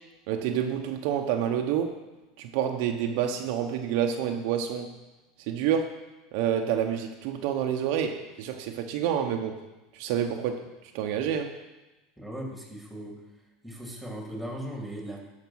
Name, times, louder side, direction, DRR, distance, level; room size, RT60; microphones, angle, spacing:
voice 1, 0.3-2.0 2.4-4.9 5.4-5.9 6.3-9.5 9.9-11.5, right 9 dB, 65° right, 4 dB, 1.0 m, -28 dB
voice 2, 12.2-13.2 13.6-15.2, right 1 dB, ahead, 0 dB, 2.7 m, -38 dB
12.5 x 5.2 x 6.3 m, 1.1 s
supercardioid pair, 110°, 0 cm